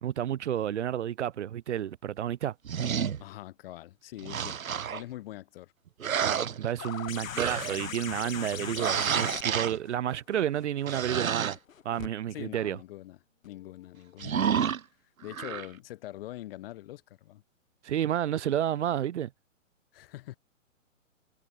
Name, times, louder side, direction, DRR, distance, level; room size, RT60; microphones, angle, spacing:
voice 1, 0.0-2.5 6.2-11.6 11.8-12.8 17.8-19.3, right 10 dB, 60° right, 1.4 m, -31 dB
sound 1, 2.6-3.2 4.2-5.0 6.0-7.0 7.4-7.8 8.7-9.8 10.9-11.5 14.2-14.8 15.3-15.7, right 8 dB, 85° right, 1.2 m, -30 dB
voice 2, 3.2-5.7 12.3-13.2 13.4-14.7 15.2-17.4 19.9-20.4, left 15 dB, 45° left, 6.8 m, -44 dB
sound 2, 6.8-12.1 13.4-13.5, left 8 dB, 75° left, 1.8 m, -40 dB
hypercardioid pair, 140°, 40 cm